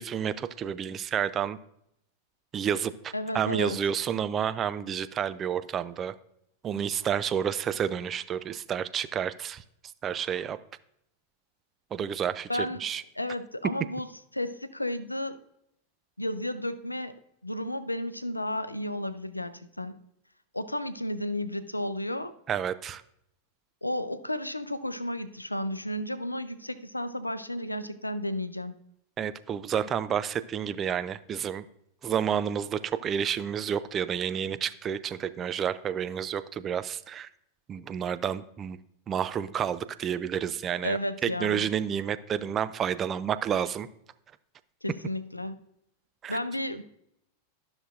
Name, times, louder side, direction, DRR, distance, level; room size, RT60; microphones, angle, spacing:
voice 1, 0.0-1.6 2.5-6.1 6.6-9.6 10.0-10.6 11.9-13.0 22.5-23.0 29.2-31.6 32.0-37.3 37.7-38.8 39.1-43.9 46.2-46.4, right 8 dB, 25° right, 13 dB, 0.4 m, -30 dB
voice 2, 3.1-3.8 12.5-12.8 13.2-14.1 14.3-15.4 16.2-20.0 20.5-22.3 23.8-28.8 40.8-41.7 44.8-45.5 46.3-46.8, left 1 dB, 85° left, 13 dB, 0.5 m, -33 dB
12.5 x 6.0 x 2.5 m, 0.74 s
figure-of-eight pair, 90°, 0 cm